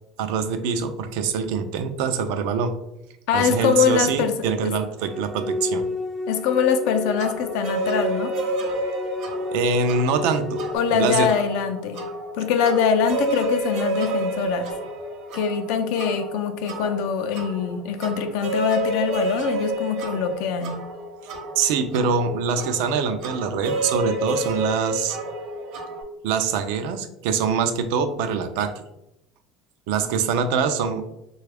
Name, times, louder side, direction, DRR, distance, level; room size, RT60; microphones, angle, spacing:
voice 1, 0.2-2.8 3.3-5.9 9.5-11.3 21.6-25.2 26.2-28.7 29.9-31.1, right 5 dB, 80° right, 9 dB, 0.4 m, -24 dB
voice 2, 3.3-4.8 6.3-8.4 10.7-12.1 12.3-14.8 15.3-20.8, left 7 dB, 75° left, 7 dB, 0.4 m, -23 dB
sound 1, 5.0-10.8, left 2 dB, 10° right, 0.3 m, -31 dB
sound 2, 7.2-26.0, right 2 dB, 60° right, 0.8 m, -30 dB
3.2 x 2.3 x 3.4 m, 0.85 s
cardioid pair, 150°, 0 cm